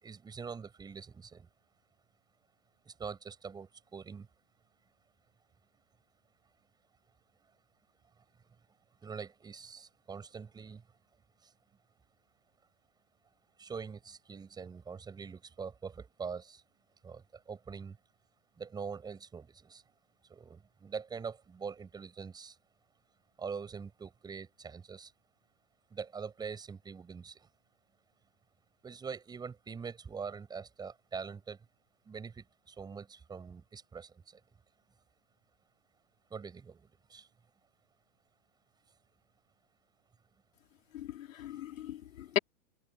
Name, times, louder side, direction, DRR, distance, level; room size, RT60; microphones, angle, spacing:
voice 1, 0.0-1.5 2.9-4.3 9.0-10.8 13.6-16.6 17.0-17.2 17.5-18.0 18.6-19.8 20.3-22.5 23.4-25.1 25.9-27.3 28.8-31.6 32.1-34.1 36.3-36.8 37.1-37.3, right 5 dB, 10° right, 6.5 m, -43 dB
voice 2, 40.9-42.4, left 11 dB, 80° left, 3.9 m, -36 dB
open air
supercardioid pair, 165°, 39 cm